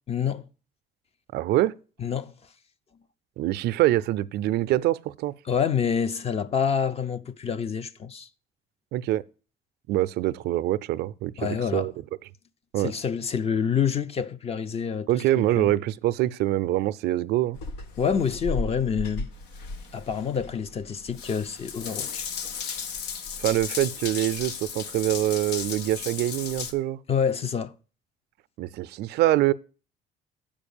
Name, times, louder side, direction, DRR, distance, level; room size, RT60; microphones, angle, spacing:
voice 1, 0.1-0.5 2.0-2.3 5.5-8.3 11.4-11.9 12.8-15.1 15.4-15.7 18.0-19.3 19.9-22.3 27.1-27.7, left 7 dB, 35° left, 0.7 m, -27 dB
voice 2, 1.3-1.8 3.4-5.3 8.9-9.2 9.9-11.9 12.7-12.9 15.1-17.6 23.4-27.0 28.6-29.5, right 15 dB, 75° right, 0.5 m, -25 dB
Water tap faucet / Bathtub (filling or washing) / Drip, 17.5-26.7, left 5 dB, 85° left, 1.0 m, -35 dB
7.2 x 5.2 x 7.0 m
cardioid pair, 110°, 17 cm